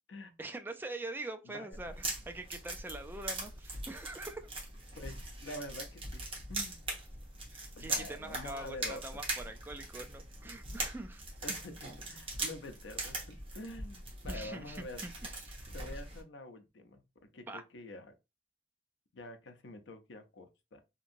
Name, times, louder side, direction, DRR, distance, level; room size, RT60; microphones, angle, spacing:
voice 1, 0.4-4.5 7.5-11.2 14.3-15.6 17.5-17.6, right 2 dB, 10° right, 0.3 m, -44 dB
sound 1, 1.7-16.2, right 2 dB, 30° right, 1.0 m, -41 dB
voice 2, 5.0-6.2 6.5-6.8 7.8-9.0 11.4-15.1 15.7-17.0 17.3-18.1 19.1-20.8, left 1 dB, 85° left, 0.6 m, -46 dB
2.9 x 2.6 x 2.5 m
head